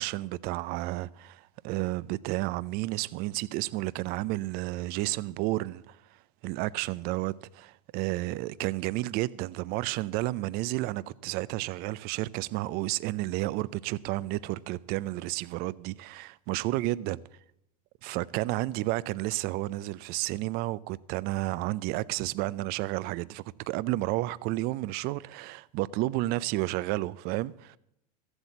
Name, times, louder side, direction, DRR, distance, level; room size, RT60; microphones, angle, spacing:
voice 1, 0.0-6.0 6.4-17.2 18.0-27.8, right 18 dB, 50° right, 0.5 m, -31 dB
14.0 x 8.1 x 7.3 m
hypercardioid pair, 90°, 21 cm